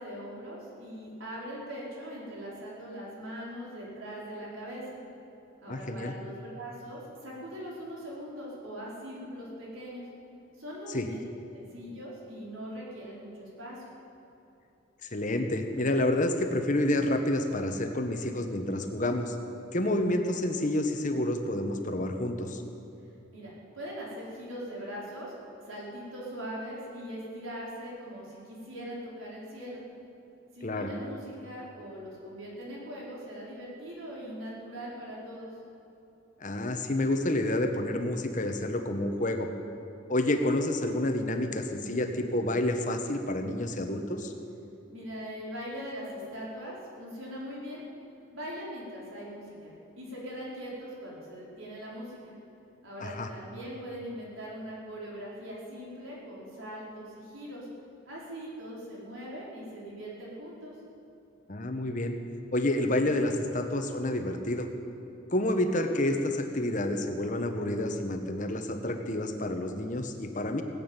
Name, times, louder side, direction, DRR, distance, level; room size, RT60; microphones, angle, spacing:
voice 1, 0.0-5.0 5.6-10.0 10.6-11.2 11.5-13.8 23.3-25.3 25.6-29.8 30.5-35.5 44.9-47.8 48.3-52.3 52.8-57.7 58.0-60.8, equal, 90° right, -5 dB, 4.8 m, -41 dB
voice 2, 5.7-6.1 10.9-11.1 15.0-19.3 19.7-22.6 30.6-30.9 36.4-39.5 40.1-44.3 53.0-53.3 61.5-62.1 62.5-64.7 65.3-70.6, left 1 dB, 40° left, 6 dB, 1.2 m, -29 dB
18.5 x 8.7 x 9.0 m, 2.9 s
head